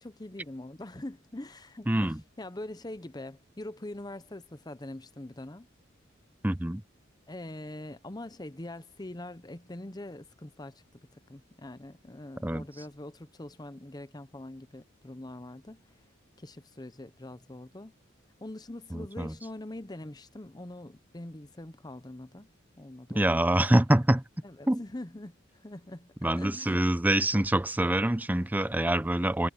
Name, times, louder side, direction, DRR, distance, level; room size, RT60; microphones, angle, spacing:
voice 1, 0.0-5.7 7.3-10.8 11.1-15.8 16.4-17.9 18.4-22.5 22.8-23.7 24.4-26.9 27.1-27.2, left 1 dB, 20° left, 0.8 m, -43 dB
voice 2, 1.9-2.2 6.4-6.8 12.4-12.6 18.9-19.3 23.1-24.2 24.7-24.8 26.2-29.5, right 1 dB, 10° right, 0.5 m, -25 dB
head